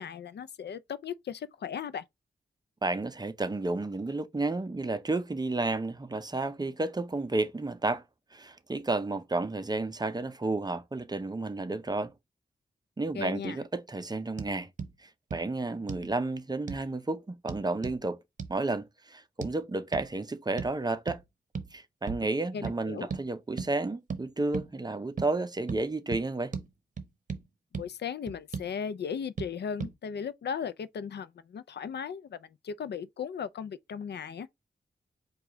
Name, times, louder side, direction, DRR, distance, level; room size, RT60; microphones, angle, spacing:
voice 1, 0.0-2.0 13.1-13.6 22.5-23.1 27.7-34.5, left 7 dB, 70° left, 0.4 m, -37 dB
voice 2, 2.8-8.0 8.3-12.1 13.0-14.7 15.0-18.2 18.5-21.2 21.7-26.5, right 2 dB, 25° right, 0.6 m, -32 dB
sound 1, 14.4-14.5 14.8-14.9 15.3-15.4 15.9-16.1 16.7-16.9 17.5-18.0 18.4-18.5 19.4-19.5 19.9-20.1 20.6-20.8 21.1-21.2 21.5-21.7 22.1-22.3 22.6-22.8 23.1-23.2 23.6-23.7 24.1-24.2 24.5-24.7 25.2-25.3 25.7-25.8 26.1-26.2 26.5-26.7 27.0-27.4 27.7-27.9 28.3-28.7 29.4-29.5 29.8-29.9, right 5 dB, 45° right, 0.8 m, -36 dB
4.7 x 2.3 x 3.9 m
wide cardioid pair, 95°, 18 cm